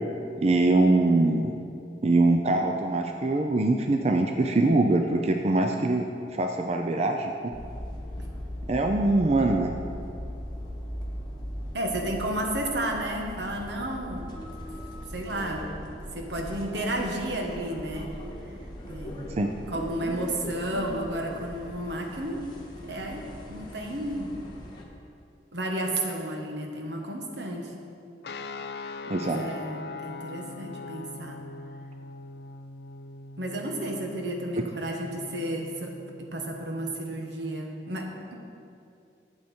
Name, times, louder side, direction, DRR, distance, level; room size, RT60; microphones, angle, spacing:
voice 1, 0.4-1.5 2.0-6.0 6.3-7.3 8.7-9.7 19.4-19.5 29.1-29.4, right 2 dB, 35° right, 4 dB, 0.5 m, -23 dB
sound 1, 7.5-24.8, equal, 25° left, 1.2 m, -39 dB
voice 2, 11.7-14.3 15.1-15.6 16.1-18.1 18.8-19.3 19.7-22.4 22.8-24.3 25.5-27.7 29.2-31.4 33.4-38.3, right 1 dB, 80° right, 1 dB, 1.3 m, -32 dB
sound 2, 28.2-37.2, left 3 dB, 65° left, 0.4 m, -42 dB
11.5 x 7.8 x 4.4 m, 2.6 s
head